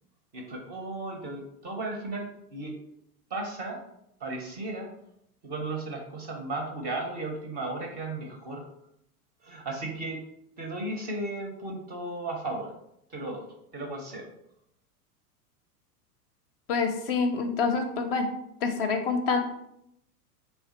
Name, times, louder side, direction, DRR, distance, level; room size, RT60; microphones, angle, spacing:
voice 1, 0.3-2.7 3.3-3.8 4.2-4.9 5.4-8.7 9.4-10.2 10.6-12.7 13.1-13.5 13.7-14.3, right 2 dB, 20° right, 2 dB, 0.5 m, -35 dB
voice 2, 16.7-18.3 18.6-19.4, left 4 dB, 40° left, 6 dB, 0.5 m, -26 dB
3.3 x 2.4 x 4.0 m, 0.77 s
figure-of-eight pair, 95°, 47 cm